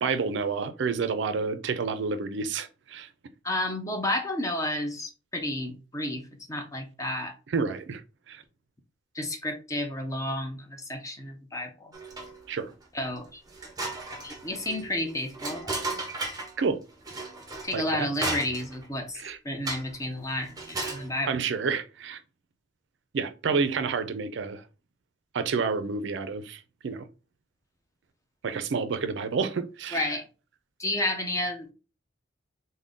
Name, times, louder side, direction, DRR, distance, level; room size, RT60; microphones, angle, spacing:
voice 1, 0.0-3.1 7.5-8.0 8.3-8.4 12.5-12.7 16.6-16.8 17.7-18.1 19.2-19.4 21.3-22.2 23.1-24.6 25.3-27.1 28.4-30.2, right 5 dB, 65° right, 0.4 m, -29 dB
voice 2, 3.4-6.2 6.5-7.3 9.1-11.9 12.9-13.4 14.2-16.0 17.6-21.3 29.9-30.2 30.8-31.7, left 1 dB, 15° left, 0.5 m, -31 dB
sound 1, 11.9-12.5 13.0-13.1 13.5-16.6 17.1-18.9 19.7-20.0 20.5-21.1, right 2 dB, 20° right, 0.7 m, -35 dB
3.6 x 2.1 x 3.6 m
head